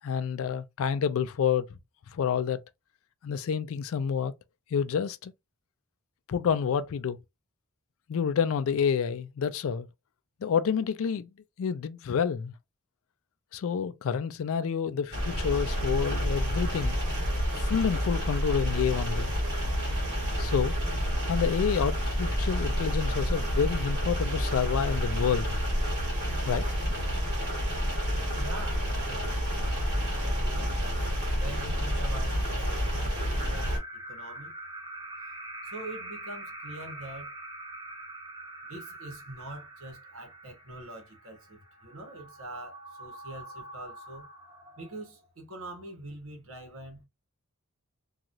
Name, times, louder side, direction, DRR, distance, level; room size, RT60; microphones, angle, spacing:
voice 1, 0.0-1.7 2.1-2.6 3.2-4.3 4.7-5.3 6.3-7.2 8.1-9.9 10.4-11.3 11.6-12.5 13.5-17.0 17.5-19.3 20.4-20.8 21.3-25.6 26.4-26.7, left 7 dB, 60° left, 0.3 m, -28 dB
sound 1, 15.1-33.8, equal, 50° right, 1.6 m, -29 dB
sound 2, 27.9-45.2, right 1 dB, 15° right, 0.7 m, -45 dB
voice 2, 28.3-30.7 31.4-34.5 35.6-37.3 38.6-44.3 44.8-47.0, right 1 dB, 65° right, 1.1 m, -44 dB
2.9 x 2.3 x 2.5 m
head